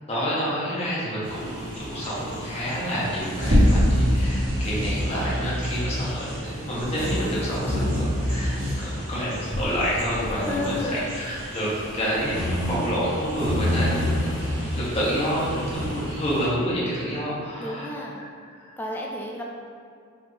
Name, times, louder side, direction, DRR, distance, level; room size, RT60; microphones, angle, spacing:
voice 1, 0.1-11.7 11.9-14.4 14.8-17.9 18.2-18.3 18.6-18.7, equal, 30° left, -7 dB, 0.9 m, -28 dB
sound 1, 1.2-16.5, equal, 55° right, 1.4 m, -27 dB
voice 2, 10.4-11.1 14.2-14.3 17.6-18.2 18.8-19.4, left 2 dB, 10° left, -2 dB, 0.3 m, -32 dB
4.1 x 2.7 x 3.2 m, 2.2 s
head